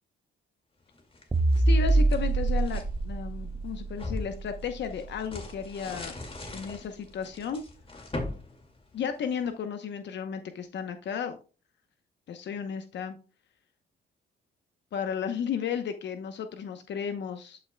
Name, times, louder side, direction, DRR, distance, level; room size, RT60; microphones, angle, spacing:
sound 1, 0.9-2.9 3.4-9.5, left 2 dB, 25° left, 2.2 m, -40 dB
sound 2, 1.3-5.8, right 2 dB, 20° right, 0.7 m, -26 dB
voice 1, 1.6-6.1 6.5-7.6 8.9-11.4 12.3-13.2 14.9-17.7, left 7 dB, 65° left, 7 dB, 0.9 m, -34 dB
11.5 x 5.7 x 2.2 m, 0.34 s
cardioid pair, 90°, 20 cm